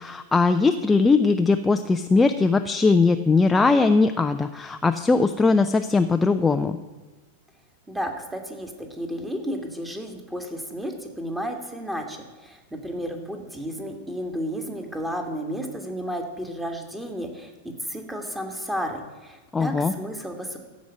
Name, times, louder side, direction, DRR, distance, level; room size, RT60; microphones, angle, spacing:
voice 1, 0.0-6.8 19.5-19.9, left 4 dB, 10° left, 7 dB, 0.5 m, -20 dB
voice 2, 7.9-20.6, equal, 5° right, 4 dB, 1.9 m, -32 dB
15.0 x 5.2 x 9.5 m, 1.2 s
figure-of-eight pair, 90°, 0 cm